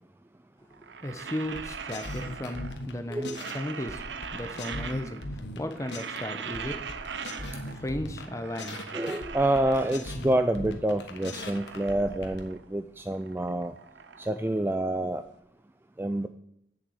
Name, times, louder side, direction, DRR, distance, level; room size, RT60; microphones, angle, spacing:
voice 1, 0.6-4.0 4.3-6.8 7.8-8.8, left 1 dB, 15° left, 7 dB, 0.9 m, -35 dB
sound 1, 0.7-2.9 3.2-5.4 5.6-7.9 8.2-10.2 10.7-12.7 13.0-15.2, right 6 dB, 75° right, 0.7 m, -41 dB
sound 2, 1.5-3.6 3.9-6.2 6.5-8.3 8.6-12.4, left 2 dB, 75° left, 1.3 m, -39 dB
voice 2, 8.9-13.7 14.2-15.2 16.0-16.3, right 1 dB, 10° right, 9 dB, 0.3 m, -27 dB
7.8 x 7.4 x 8.0 m, 0.75 s
head